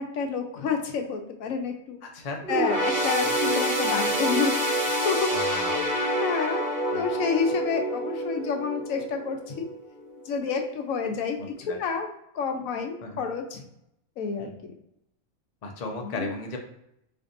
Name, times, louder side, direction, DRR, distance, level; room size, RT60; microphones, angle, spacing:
voice 1, 0.0-2.0 2.5-4.5 5.0-5.3 5.8-6.6 6.9-9.7 10.3-12.1 12.3-13.6 14.2-14.7 16.0-16.3, left 5 dB, 75° left, 4 dB, 1.0 m, -29 dB
voice 2, 2.0-2.4 3.2-3.3 5.3-5.8 6.9-7.0 11.4-11.8 13.0-13.2 14.4-14.5 15.6-16.6, left 2 dB, 45° left, 2 dB, 0.5 m, -35 dB
sound 1, 2.4-10.1 10.5-10.7 11.6-11.7, right 1 dB, 30° right, 1.2 m, -27 dB
4.3 x 2.6 x 2.5 m, 0.78 s
omnidirectional pair, 1.4 m